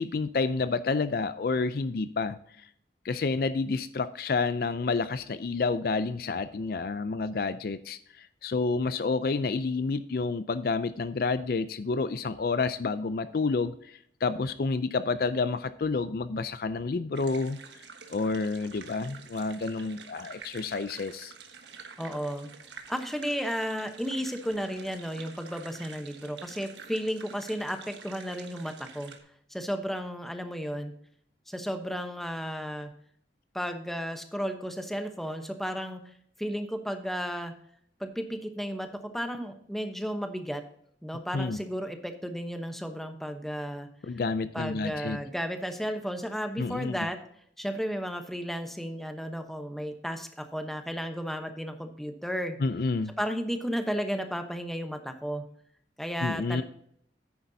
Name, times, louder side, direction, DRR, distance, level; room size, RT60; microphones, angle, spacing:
voice 1, 0.0-2.4 3.0-17.8 18.1-21.3 41.3-41.6 44.1-45.2 46.6-47.0 52.6-53.1 56.2-56.6, left 4 dB, 55° left, 13 dB, 0.4 m, -29 dB
sound 1, 17.1-29.2, right 5 dB, 85° right, 1.3 m, -48 dB
voice 2, 22.0-22.5 22.9-29.1 29.5-30.9 31.5-32.9 33.5-36.0 36.4-37.5 38.0-38.9 39.1-40.6 41.0-43.9 44.5-47.2 47.6-52.6 53.2-55.4 56.0-56.6, equal, ahead, 6 dB, 0.9 m, -33 dB
10.5 x 9.3 x 2.7 m, 0.66 s
head